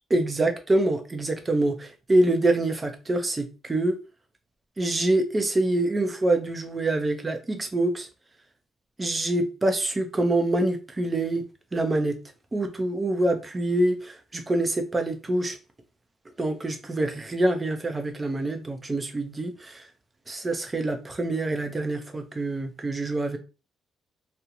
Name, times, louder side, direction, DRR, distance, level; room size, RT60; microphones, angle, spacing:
voice 1, 0.1-4.0 4.8-8.1 9.0-11.4 11.7-12.2 12.5-15.6 16.4-19.9 20.3-23.4, right 2 dB, 25° right, 0.6 m, -25 dB
2.4 x 2.1 x 2.9 m
cardioid pair, 90°, 0 cm